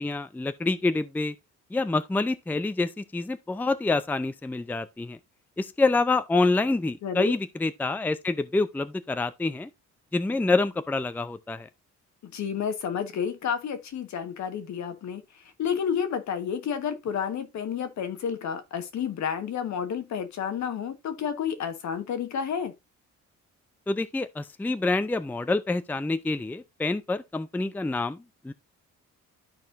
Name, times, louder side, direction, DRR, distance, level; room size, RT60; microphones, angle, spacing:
voice 1, 0.0-1.3 1.7-5.2 5.6-9.7 10.1-11.7 23.9-28.2 28.4-28.5, left 3 dB, 5° left, 0.5 m, -27 dB
voice 2, 7.0-7.3 12.2-22.7, left 7 dB, 70° left, 1.3 m, -30 dB
13.0 x 4.3 x 2.5 m
cardioid pair, 90°, 30 cm